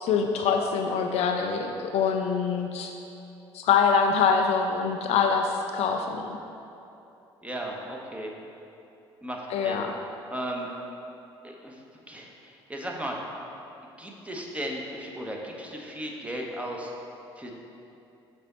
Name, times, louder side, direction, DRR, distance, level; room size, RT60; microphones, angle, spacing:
voice 1, 0.0-2.9 3.5-6.4 9.5-9.9, left 6 dB, 50° left, 3 dB, 0.4 m, -24 dB
voice 2, 7.4-8.3 9.2-9.8 10.3-10.7 11.4-13.2 14.0-16.9 17.4-17.5, right 1 dB, 10° right, -1 dB, 0.9 m, -36 dB
6.6 x 4.1 x 4.2 m, 2.8 s
figure-of-eight pair, 55°, 14 cm